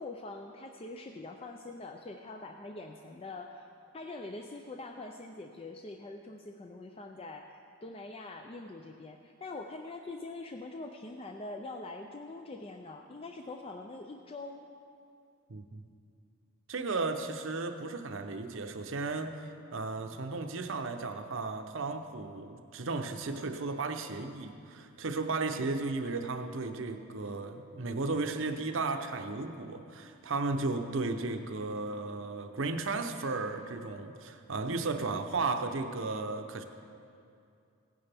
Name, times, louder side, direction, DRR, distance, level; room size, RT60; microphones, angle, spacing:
voice 1, 0.0-14.7, left 2 dB, 25° left, 4 dB, 0.4 m, -44 dB
voice 2, 15.5-15.8 16.7-36.6, right 3 dB, 60° right, 7 dB, 0.7 m, -34 dB
17.0 x 9.9 x 3.4 m, 2.5 s
head